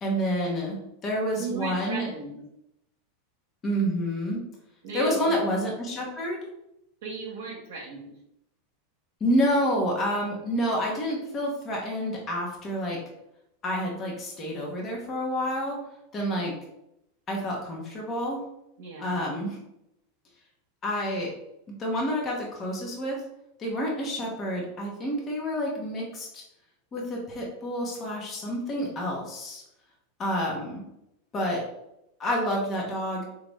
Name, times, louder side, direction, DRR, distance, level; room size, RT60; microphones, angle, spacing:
voice 1, 0.0-2.1 3.6-4.4 4.9-6.4 9.2-13.0 13.6-15.8 16.1-16.5 17.3-18.4 19.0-19.6 20.8-21.3 21.7-23.2 23.6-26.4 26.9-29.6 30.2-30.8 31.3-31.6 32.2-33.2, equal, 30° left, -2 dB, 1.0 m, -28 dB
voice 2, 1.3-2.4 4.8-5.4 7.0-8.1 16.1-16.5 18.8-19.2 28.0-28.2, right 4 dB, 70° right, -4 dB, 0.8 m, -37 dB
3.9 x 2.5 x 3.4 m, 0.83 s
hypercardioid pair, 95°, 0 cm